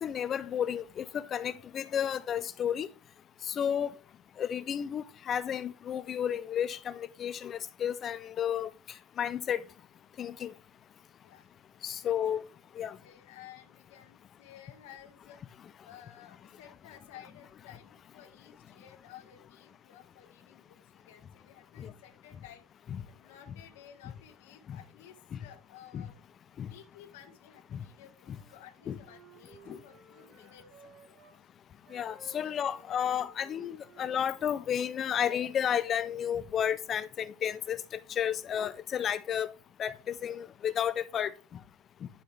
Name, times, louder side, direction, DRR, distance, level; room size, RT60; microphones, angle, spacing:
voice 1, 0.0-2.9 3.5-3.9 4.4-8.7 9.2-9.6 10.2-10.5 11.8-12.4 12.8-13.0 21.8-21.9 22.9-23.0 24.7-24.8 25.3-25.4 25.9-26.1 26.6-26.7 27.7-27.8 28.9-29.0 29.7-29.8 31.9-37.8 38.1-39.5 39.8-41.3, left 9 dB, 20° left, 0.4 m, -32 dB
voice 2, 12.8-26.3 26.6-30.9 32.2-34.1, left 10 dB, 70° left, 1.5 m, -55 dB
Wind instrument woodwind instrument, 28.2-31.4 31.8-35.0, right 3 dB, 25° right, 2.4 m, -57 dB
11.0 x 5.5 x 3.3 m
supercardioid pair, 170°, 0 cm